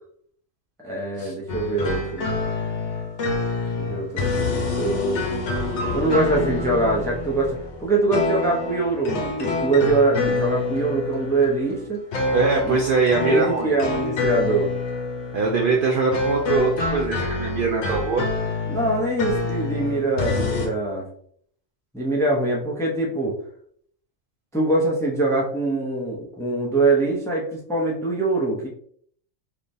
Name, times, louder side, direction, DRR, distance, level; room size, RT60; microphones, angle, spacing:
voice 1, 0.8-2.5 3.8-5.2 5.9-12.0 12.6-12.8 13.2-14.7 18.7-21.1 21.9-23.4 24.5-28.7, right 2 dB, 5° left, -3 dB, 0.5 m, -23 dB
sound 1, 1.5-20.7, left 3 dB, 65° left, 1.1 m, -27 dB
voice 2, 12.3-13.7 15.3-18.2, right 4 dB, 65° right, 1 dB, 0.5 m, -22 dB
3.4 x 2.8 x 2.6 m, 0.62 s
omnidirectional pair, 1.3 m